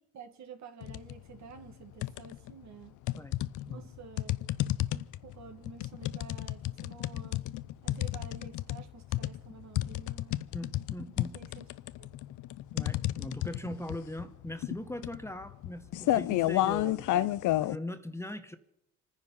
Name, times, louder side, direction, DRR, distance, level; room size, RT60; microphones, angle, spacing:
voice 1, 0.1-3.0 3.7-4.3 4.9-7.4 7.8-10.4 11.3-11.7 12.0-12.1 16.8-17.4, right 6 dB, 65° right, 7 dB, 1.9 m, -50 dB
sound 1, 0.8-1.2 1.6-2.5 3.1-17.8, left 15 dB, 80° left, 0.6 m, -31 dB
voice 2, 10.5-11.4 12.7-17.0 17.6-18.6, left 1 dB, 10° left, 9 dB, 1.0 m, -40 dB
26.5 x 10.0 x 5.5 m, 0.77 s
cardioid pair, 90°, 30 cm